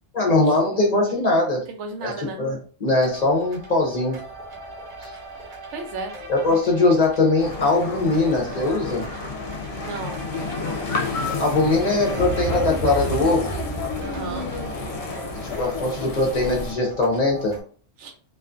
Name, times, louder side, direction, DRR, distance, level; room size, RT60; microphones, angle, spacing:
voice 1, 0.1-1.7 2.0-2.1 2.4-4.2 5.0-5.1 6.3-9.0 11.4-13.5 15.4-17.5, left 2 dB, 45° left, -1 dB, 0.6 m, -21 dB
voice 2, 1.7-2.4 5.4-6.1 9.7-10.3 14.0-14.5 18.0-18.1, right 3 dB, 85° right, 4 dB, 0.9 m, -34 dB
sound 1, 2.9-17.6, right 3 dB, 50° right, 0.9 m, -36 dB
sound 2, 7.4-16.7, left 4 dB, 70° left, 0.8 m, -30 dB
2.4 x 2.3 x 2.4 m, 0.41 s
omnidirectional pair, 1.2 m